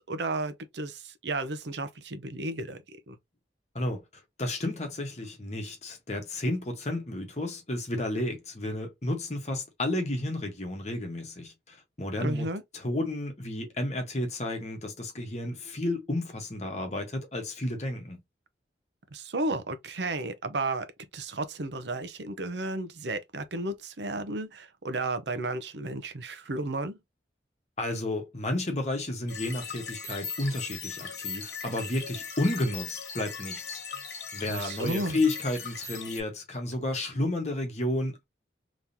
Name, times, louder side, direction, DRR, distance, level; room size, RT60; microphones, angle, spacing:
voice 1, 0.1-3.2 12.2-12.6 19.1-27.0 34.5-35.2, right 2 dB, 75° right, 0.7 m, -33 dB
voice 2, 4.4-12.5 12.7-18.2 27.8-33.8 34.3-38.2, left 1 dB, 40° left, 1.2 m, -32 dB
sound 1, 29.3-36.2, left 5 dB, 65° left, 1.2 m, -39 dB
3.6 x 3.1 x 2.7 m
head